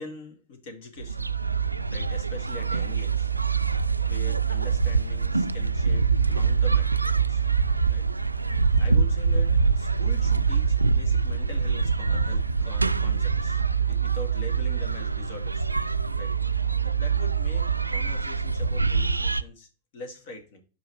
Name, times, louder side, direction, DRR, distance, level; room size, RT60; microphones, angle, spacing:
voice 1, 0.0-1.4 1.9-3.3 4.1-7.0 7.3-7.4 7.9-8.0 8.8-13.6 13.9-15.7 16.2-16.3 16.8-20.6, left 2 dB, 50° left, 4 dB, 2.1 m, -43 dB
sound 1, 1.0-19.4, right 5 dB, 85° right, 0.3 m, -24 dB
4.9 x 4.9 x 6.1 m, 0.35 s
figure-of-eight pair, 90°, 0 cm